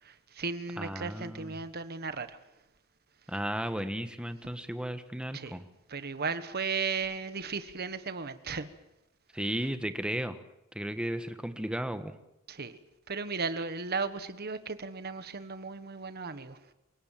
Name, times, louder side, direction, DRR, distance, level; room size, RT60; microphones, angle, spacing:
voice 1, 0.0-2.4 5.3-5.6 5.9-8.7 12.5-12.8 13.1-16.6, right 4 dB, 50° right, 1.4 m, -35 dB
voice 2, 0.8-1.5 3.3-5.6 9.3-10.4 10.7-12.1, right 1 dB, 5° right, 1.3 m, -34 dB
28.5 x 18.0 x 7.5 m
head